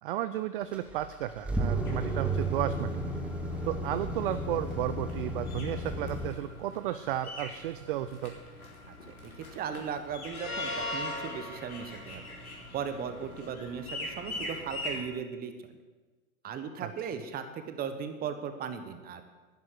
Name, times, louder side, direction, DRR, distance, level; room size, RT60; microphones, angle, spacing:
voice 1, 0.0-3.0 3.7-8.4 16.8-16.9, right 12 dB, 40° right, 12 dB, 0.6 m, -33 dB
sound 1, 0.7-6.3, right 1 dB, 5° right, 1.3 m, -33 dB
sound 2, 1.9-15.0, left 1 dB, 80° left, 4.1 m, -41 dB
voice 2, 8.9-12.3 12.7-15.5 16.4-19.2, right 7 dB, 20° right, 9 dB, 1.2 m, -37 dB
11.0 x 10.5 x 7.9 m, 1.3 s
figure-of-eight pair, 110°, 43 cm